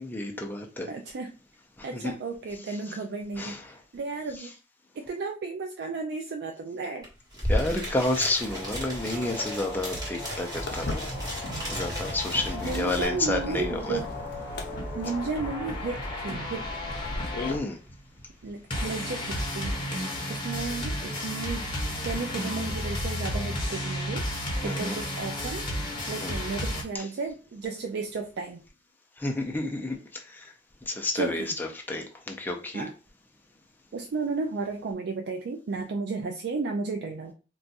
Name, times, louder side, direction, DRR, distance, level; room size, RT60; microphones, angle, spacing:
voice 1, 0.0-0.9 1.8-2.2 3.4-3.8 4.4-4.5 7.5-11.1 11.7-14.0 17.4-17.8 24.6-25.0 26.2-26.4 26.9-27.1 29.2-30.5 30.9-32.9, left 2 dB, 10° left, 2 dB, 0.5 m, -31 dB
voice 2, 0.9-1.3 1.8-4.5 5.0-7.1 12.5-14.1 14.9-16.7 18.4-19.8 20.3-21.7 22.0-25.7 26.1-28.6 31.1-31.5 32.7-32.9 33.9-37.3, right 4 dB, 60° right, 4 dB, 0.4 m, -33 dB
sound 1, 7.0-7.1 7.3-13.1, equal, 20° right, 1.4 m, -34 dB
sound 2, 8.2-26.8, left 1 dB, 25° left, 0.8 m, -34 dB
Walk footsteps, 10.6-17.6, left 2 dB, 60° left, 0.6 m, -38 dB
2.5 x 2.3 x 3.9 m, 0.34 s
head